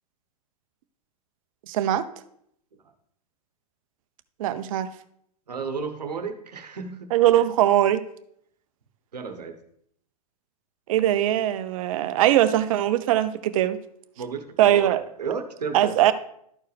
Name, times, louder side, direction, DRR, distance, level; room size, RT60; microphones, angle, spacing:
voice 1, 1.7-2.1 4.4-4.9 7.1-8.0 10.9-13.8 14.6-15.0 15.7-16.1, right 12 dB, 60° right, 12 dB, 0.7 m, -21 dB
voice 2, 5.5-7.1 9.1-9.5 14.2-16.0, right 5 dB, 85° right, 6 dB, 1.1 m, -33 dB
12.5 x 4.6 x 3.4 m, 0.69 s
hypercardioid pair, 105°, 20 cm